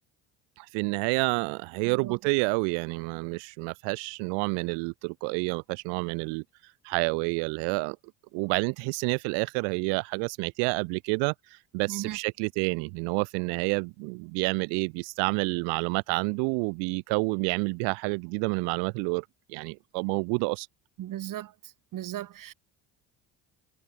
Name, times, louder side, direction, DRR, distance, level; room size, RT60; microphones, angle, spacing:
voice 1, 0.6-6.4 6.8-8.0 8.3-20.7, right 40 dB or more, 85° right, 1.1 m, -29 dB
voice 2, 1.8-2.2 11.9-12.2 21.0-21.5 21.9-22.5, right 13 dB, 55° right, 1.6 m, -36 dB
supercardioid pair, 90°, 40 cm